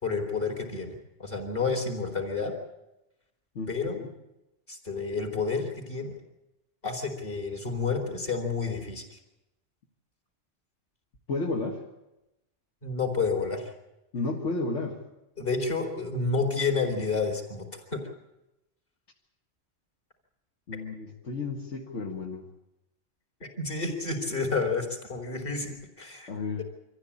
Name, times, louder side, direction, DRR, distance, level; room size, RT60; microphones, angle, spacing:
voice 1, 0.0-0.9 1.2-2.5 3.7-4.0 4.7-6.1 6.8-9.2 12.8-13.7 15.4-17.7 17.9-18.1 23.4-26.3, left 4 dB, 45° left, 3 dB, 4.3 m, -30 dB
voice 2, 3.6-4.1 11.3-11.8 14.1-15.0 20.7-22.4 26.3-26.6, left 3 dB, 70° left, -1 dB, 2.2 m, -32 dB
25.5 x 14.5 x 8.7 m, 0.94 s
omnidirectional pair, 1.3 m